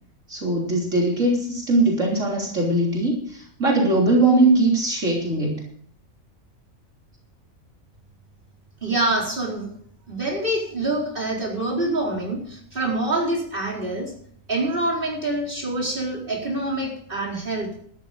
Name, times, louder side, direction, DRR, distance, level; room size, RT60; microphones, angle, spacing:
voice 1, 0.3-5.6, right 2 dB, 60° right, -2 dB, 3.7 m, -20 dB
voice 2, 8.8-9.7 10.1-14.1 14.5-17.7, right 2 dB, 40° right, -2 dB, 4.6 m, -26 dB
13.0 x 12.0 x 5.2 m, 0.62 s
omnidirectional pair, 1.4 m